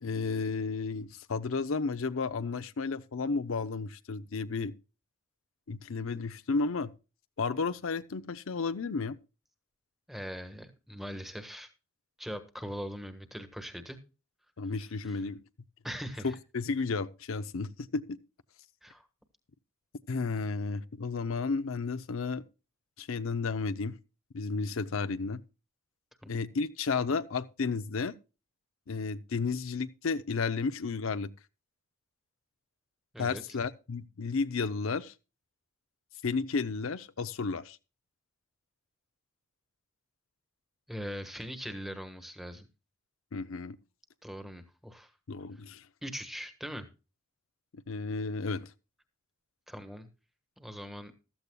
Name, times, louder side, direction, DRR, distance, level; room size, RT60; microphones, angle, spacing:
voice 1, 0.0-4.7 5.7-6.9 7.4-9.2 14.6-15.4 16.2-18.2 20.1-22.4 23.0-24.0 24.3-25.4 26.3-28.1 28.9-31.3 33.2-35.1 36.2-37.8 43.3-43.8 45.3-45.8 47.9-48.7, left 4 dB, 70° left, 0.6 m, -32 dB
voice 2, 10.1-11.7 12.2-14.0 14.8-15.2 15.8-16.4 18.8-19.1 26.2-26.5 33.1-33.4 40.9-42.7 44.2-45.1 46.0-46.9 49.7-50.1 50.6-51.1, equal, ahead, 1.3 m, -41 dB
15.0 x 13.5 x 2.3 m
head